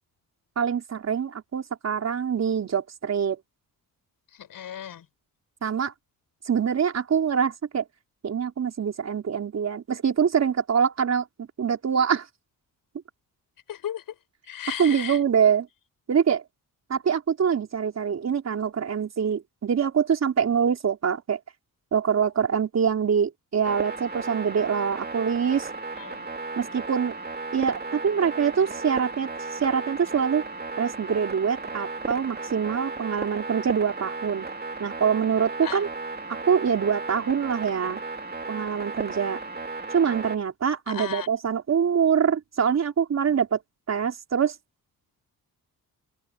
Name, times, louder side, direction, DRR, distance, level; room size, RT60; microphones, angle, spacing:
voice 1, 0.6-3.4 5.6-5.9 6.5-7.8 8.2-12.2 14.8-15.7 16.1-16.4 16.9-21.4 21.9-25.7 26.6-27.2 27.5-30.4 30.8-34.5 34.8-35.9 36.3-38.0 38.5-39.4 39.9-43.6 43.9-44.5, right 7 dB, 45° right, 4.2 m, -24 dB
voice 2, 4.3-5.1 13.7-14.0 14.5-15.2 26.0-26.3 35.6-35.8 40.9-41.3, left 10 dB, 70° left, 6.9 m, -35 dB
sound 1, 23.6-40.4, right 3 dB, 25° right, 2.8 m, -35 dB
open air
cardioid pair, 135°, 35 cm